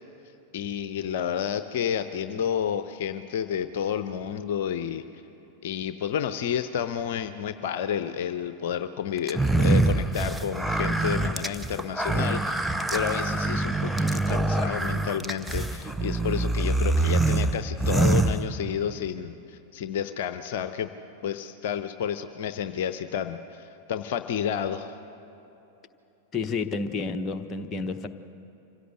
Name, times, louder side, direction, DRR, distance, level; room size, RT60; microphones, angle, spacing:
voice 1, 0.5-5.0 5.6-20.9 21.2-25.0, left 8 dB, 55° left, 10 dB, 0.7 m, -30 dB
sound 1, 9.3-19.0, right 2 dB, ahead, 0.6 m, -25 dB
voice 2, 26.3-28.1, left 4 dB, 25° left, 5 dB, 1.0 m, -30 dB
25.5 x 16.5 x 8.0 m, 2.9 s
figure-of-eight pair, 90°, 0 cm